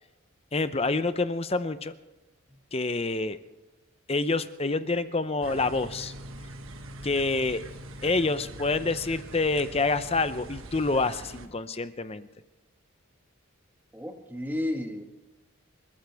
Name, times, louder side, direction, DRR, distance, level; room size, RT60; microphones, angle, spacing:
voice 1, 0.5-1.9 2.7-3.4 4.1-6.1 7.0-7.6 8.0-12.3, left 3 dB, 25° left, 12 dB, 0.7 m, -27 dB
sound 1, 5.4-11.5, right 1 dB, 70° right, 1.3 m, -43 dB
voice 2, 13.9-15.0, left 1 dB, 10° right, 3 dB, 1.6 m, -32 dB
28.5 x 14.0 x 3.5 m, 1.1 s
head